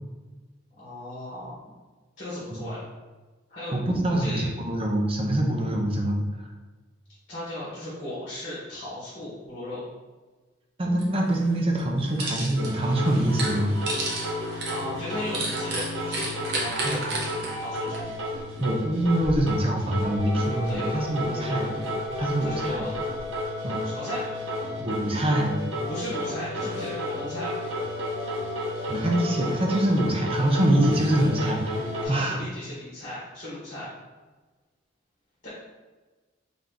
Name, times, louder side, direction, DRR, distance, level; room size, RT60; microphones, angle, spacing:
voice 1, 0.8-1.7 2.2-2.8 3.5-3.7 4.1-4.7 7.3-9.8 14.7-17.2 17.6-18.1 20.5-21.6 22.4-22.9 23.8-24.3 25.9-27.5 32.0-33.9 35.4-35.5, left 1 dB, 45° left, -9 dB, 1.3 m, -36 dB
voice 2, 3.7-6.5 10.8-13.7 16.8-17.0 18.6-21.7 22.2-22.8 23.6-23.9 24.8-25.6 28.9-32.4, right 1 dB, 30° right, 0 dB, 0.6 m, -25 dB
sound 1, 11.0-11.1 11.4-12.7 13.1-18.6 19.0-19.6 20.0-21.3 21.8-23.4, right 2 dB, 55° right, 0.9 m, -33 dB
sound 2, 12.6-32.1, left 1 dB, 80° right, 1.1 m, -32 dB
3.5 x 2.9 x 3.8 m, 1.3 s
head